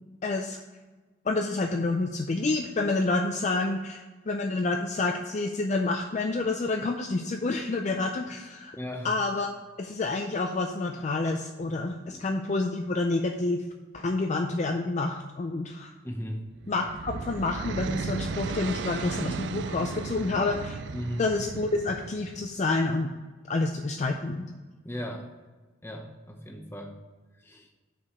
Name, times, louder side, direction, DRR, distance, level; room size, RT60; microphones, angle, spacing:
voice 1, 0.2-0.6 1.3-8.8 9.0-9.5 9.8-13.6 13.9-15.9 16.7-20.8 21.2-23.1 23.5-24.6, left 3 dB, 35° left, 3 dB, 0.3 m, -28 dB
voice 2, 8.8-9.1 12.0-12.2 16.0-16.4 20.9-21.2 24.8-25.3 25.8-26.9 27.4-27.7, equal, 10° left, 2 dB, 0.7 m, -36 dB
sound 1, 16.5-22.6, right 4 dB, 55° right, 0.3 m, -35 dB
5.7 x 4.8 x 6.4 m, 1.3 s
head